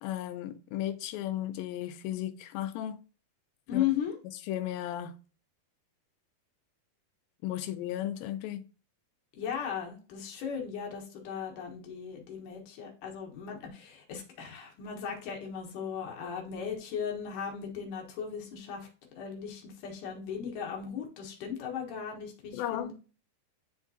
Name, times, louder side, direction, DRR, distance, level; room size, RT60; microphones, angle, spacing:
voice 1, 0.0-3.0 3.7-3.9 4.5-5.2 7.4-8.6 22.5-22.9, left 12 dB, 85° left, 2.4 m, -35 dB
voice 2, 3.7-4.1 9.3-18.9 19.2-22.9, left 8 dB, 65° left, 2.7 m, -37 dB
10.5 x 3.6 x 2.7 m
omnidirectional pair, 4.1 m